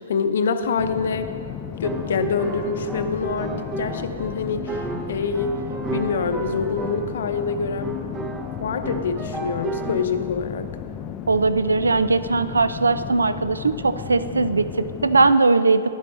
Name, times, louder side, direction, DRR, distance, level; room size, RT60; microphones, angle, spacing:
voice 1, 0.1-1.3 1.7-5.6 5.9-8.0 8.6-10.7, left 5 dB, 65° left, 9 dB, 0.7 m, -26 dB
sound 1, 0.8-15.4, left 9 dB, 25° left, 0.3 m, -35 dB
sound 2, 1.8-10.1, right 2 dB, 20° right, 0.8 m, -33 dB
voice 2, 11.3-15.9, right 3 dB, 85° right, 13 dB, 0.4 m, -19 dB
10.5 x 10.0 x 3.3 m, 2.2 s
hypercardioid pair, 125°, 0 cm